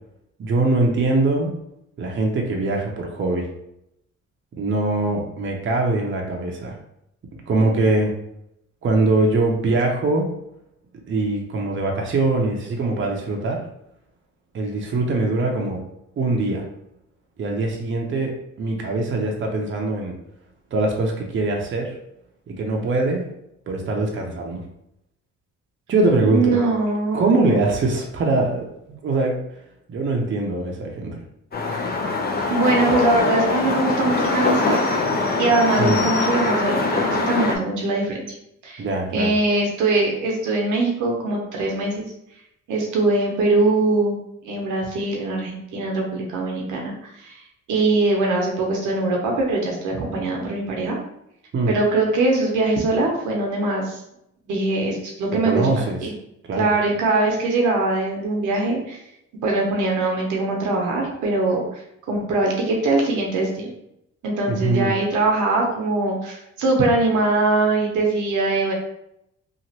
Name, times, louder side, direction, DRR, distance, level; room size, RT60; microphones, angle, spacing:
voice 1, 0.4-1.5 2.0-3.4 4.6-6.8 7.5-8.1 8.8-10.3 11.1-13.6 14.5-15.8 16.2-16.6 17.4-20.1 20.7-21.9 22.5-23.2 23.7-24.6 25.9-26.6 27.1-29.4 29.9-31.2 35.8-36.0 38.8-39.3 51.5-51.7 55.3-56.0 56.5-56.7 64.5-64.9, right 2 dB, 40° right, 1 dB, 0.7 m, -22 dB
voice 2, 26.3-27.6 32.5-34.9 35.4-38.2 38.6-38.8 39.1-42.0 42.7-44.2 44.4-47.4 47.7-51.0 51.7-54.0 54.5-55.7 56.0-56.1 56.6-59.0 59.4-61.8 62.1-63.7 64.2-68.7, right 2 dB, 85° right, 0 dB, 0.8 m, -22 dB
sound 1, 31.5-37.6, left 3 dB, 30° left, 0.6 m, -22 dB
2.9 x 2.5 x 2.8 m, 0.79 s
cardioid pair, 90°, 30 cm